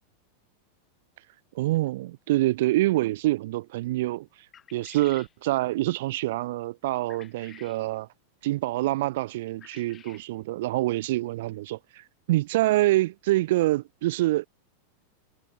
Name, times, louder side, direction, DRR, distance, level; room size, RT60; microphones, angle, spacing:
voice 1, 1.5-4.3 4.7-8.1 8.4-14.4, right 17 dB, 55° right, 1.1 m, -26 dB
sound 1, 4.5-5.3 7.1-7.8 9.6-10.3, left 9 dB, 25° left, 3.5 m, -51 dB
figure-of-eight pair, 90°, 0 cm